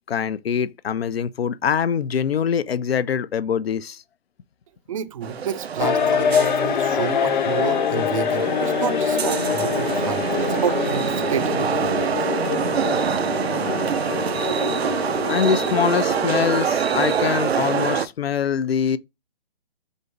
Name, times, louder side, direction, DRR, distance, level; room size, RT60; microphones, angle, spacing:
voice 1, 0.1-4.0 15.2-19.0, left 7 dB, 85° left, 0.5 m, -23 dB
voice 2, 4.9-12.2, right 8 dB, 35° right, 0.4 m, -30 dB
sound 1, 5.2-18.1, right 7 dB, 90° right, 0.6 m, -25 dB
sound 2, 5.8-17.1, left 7 dB, 50° left, 0.7 m, -25 dB
5.2 x 2.0 x 4.5 m
hypercardioid pair, 140°, 30 cm